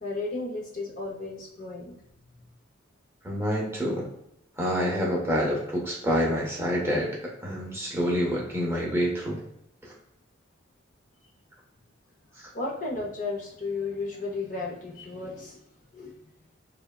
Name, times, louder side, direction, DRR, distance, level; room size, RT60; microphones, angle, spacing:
voice 1, 0.0-1.9 12.5-15.6 15.9-16.1, left 3 dB, 40° left, -2 dB, 0.6 m, -34 dB
voice 2, 3.2-4.1 4.6-9.4 9.8-9.9, equal, 10° right, -3 dB, 0.6 m, -27 dB
3.2 x 2.1 x 2.3 m, 0.78 s
head